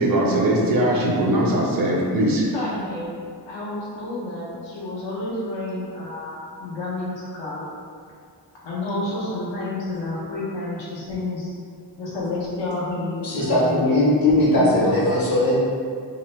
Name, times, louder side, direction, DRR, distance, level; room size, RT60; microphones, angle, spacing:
voice 1, 0.0-2.5, right 1 dB, 50° right, -2 dB, 0.5 m, -20 dB
voice 2, 2.5-7.6 8.6-11.5 12.0-13.9 14.5-15.2, left 2 dB, 80° left, -6 dB, 0.9 m, -30 dB
voice 3, 13.2-15.6, left 1 dB, 55° left, -7 dB, 0.9 m, -19 dB
2.9 x 2.0 x 3.1 m, 2.2 s
wide cardioid pair, 135°, 44 cm